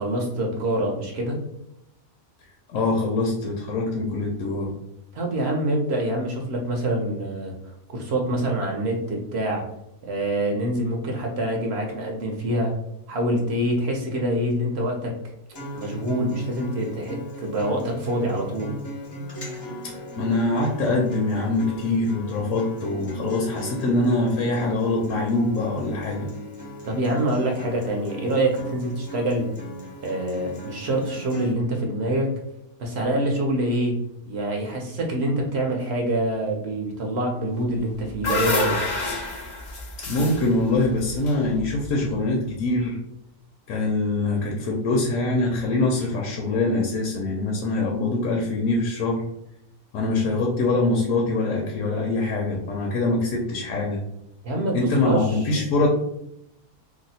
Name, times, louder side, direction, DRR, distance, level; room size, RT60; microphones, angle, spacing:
voice 1, 0.0-1.4 5.1-7.5 7.9-9.6 10.0-12.7 13.1-15.1 15.7-18.7 26.9-29.5 30.0-32.3 32.8-33.9 34.3-38.8 54.4-55.4, right 1 dB, 60° right, 1 dB, 0.8 m, -25 dB
voice 2, 2.7-4.7 19.8-26.3 40.0-43.0 43.7-49.2 49.9-54.0 54.7-55.9, left 2 dB, 70° left, -1 dB, 0.9 m, -24 dB
Acoustic guitar, 15.5-31.5, equal, 30° left, 0.5 m, -38 dB
sound 1, 37.7-42.0, left 3 dB, 90° left, 0.3 m, -29 dB
2.8 x 2.0 x 4.0 m, 0.80 s
omnidirectional pair, 1.5 m